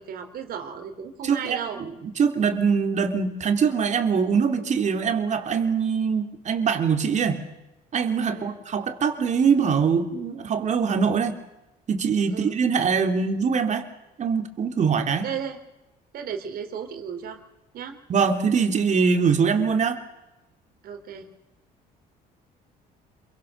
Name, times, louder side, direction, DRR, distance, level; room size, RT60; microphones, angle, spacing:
voice 1, 0.0-1.8 8.3-8.6 12.3-12.6 15.2-15.6 16.1-17.4 17.7-18.0 20.8-21.3, right 7 dB, 60° right, 6 dB, 4.0 m, -34 dB
voice 2, 1.2-1.9 2.2-7.4 7.9-11.4 11.9-13.8 14.2-15.3 18.1-20.0, right 6 dB, 45° right, 6 dB, 3.3 m, -23 dB
27.5 x 23.5 x 6.8 m, 0.99 s
cardioid pair, 110°, 17 cm